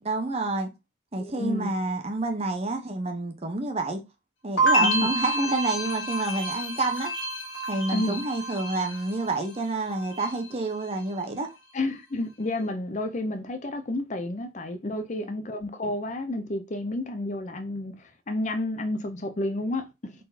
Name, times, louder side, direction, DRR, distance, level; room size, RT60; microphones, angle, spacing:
voice 1, 0.0-0.7 1.1-4.0 4.4-7.1 7.7-11.5 14.9-15.3, right 2 dB, 30° right, 0.8 m, -28 dB
voice 2, 1.2-1.7 4.8-5.1 7.9-8.2 11.7-17.9 18.3-20.1, left 2 dB, 35° left, 0.5 m, -30 dB
sound 1, 4.6-9.6 9.9-10.5, right 1 dB, 80° left, 1.4 m, -28 dB
3.9 x 3.8 x 2.7 m
head